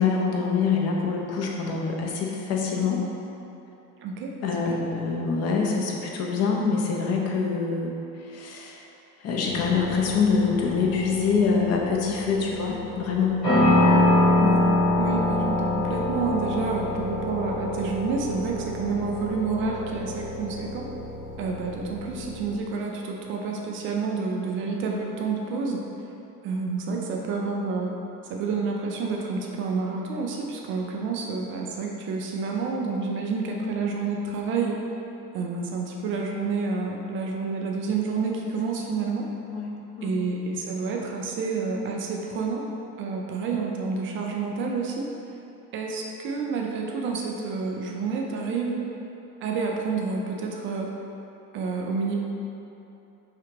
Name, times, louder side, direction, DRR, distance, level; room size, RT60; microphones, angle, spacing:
voice 1, 0.0-3.0 4.4-8.8 9.2-13.7 14.4-14.6 38.9-40.3, left 5 dB, 35° left, 0 dB, 0.6 m, -25 dB
voice 2, 4.0-4.3 4.7-4.8 13.8-14.1 15.0-20.9 21.4-25.8 26.4-28.0 28.3-34.8 35.3-39.3 40.0-42.6 43.0-45.1 45.7-48.8 49.4-50.9 51.5-52.1, right 4 dB, 30° right, 0 dB, 0.4 m, -29 dB
sound 1, 9.5-22.5, left 1 dB, 90° left, 1.4 m, -26 dB
4.9 x 3.2 x 2.9 m, 2.8 s
figure-of-eight pair, 60°, 48 cm